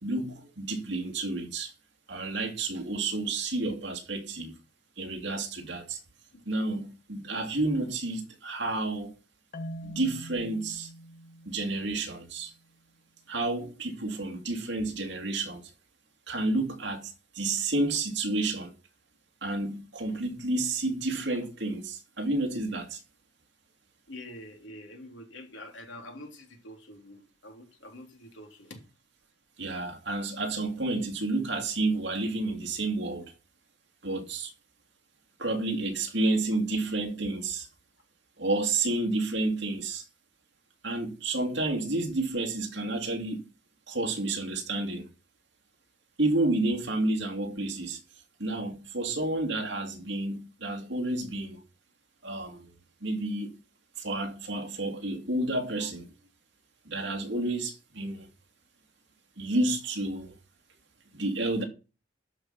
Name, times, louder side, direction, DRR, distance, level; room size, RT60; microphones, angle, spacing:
voice 1, 0.0-1.7 2.1-4.5 5.0-6.0 6.5-9.1 9.8-10.9 11.5-12.5 13.3-15.6 16.3-18.7 19.4-23.0 29.6-33.3 34.0-34.5 35.4-37.7 38.4-40.0 40.8-43.4 43.9-45.0 46.2-48.0 48.4-51.6 52.2-52.7 53.0-53.6 54.0-56.1 56.9-58.3 59.4-60.3 61.1-61.6, right 2 dB, 65° right, 2.7 m, -30 dB
Marimba xylophone, 9.5-12.5, equal, 50° left, 0.9 m, -44 dB
voice 2, 24.1-28.8, left 1 dB, 75° left, 3.4 m, -46 dB
12.0 x 5.7 x 6.1 m
head